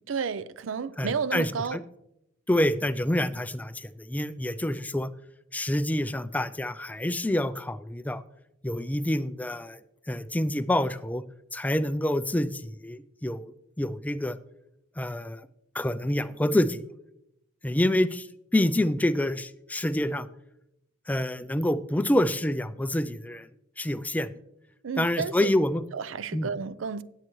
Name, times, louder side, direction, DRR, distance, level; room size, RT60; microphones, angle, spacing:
voice 1, 0.1-1.8 24.8-25.5 25.9-27.0, right 6 dB, 90° right, 0.5 m, -31 dB
voice 2, 1.0-1.8 2.5-5.1 5.5-8.2 8.6-9.8 10.1-11.2 11.5-14.4 15.0-15.5 15.7-16.8 17.6-18.3 18.5-20.3 21.1-23.5 23.8-24.3 25.0-25.8 26.3-26.5, left 1 dB, 10° left, 0.3 m, -27 dB
17.0 x 7.5 x 3.1 m
head